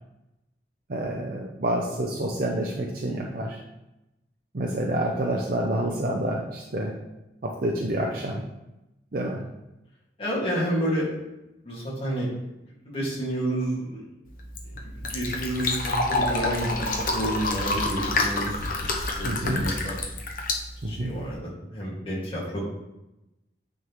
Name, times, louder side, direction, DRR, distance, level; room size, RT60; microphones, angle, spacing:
voice 1, 0.9-3.6 4.5-6.9 7.4-8.4 9.1-9.4 19.2-19.7 20.8-21.2, right 1 dB, 50° right, -1 dB, 0.6 m, -28 dB
voice 2, 10.2-11.2 11.6-12.3 12.9-14.0 14.8-18.5 18.9-20.0 20.8-22.6, right 1 dB, 30° left, -5 dB, 1.9 m, -30 dB
Fill (with liquid), 14.3-21.4, left 2 dB, 50° left, 0.8 m, -28 dB
9.2 x 3.7 x 3.0 m, 0.95 s
head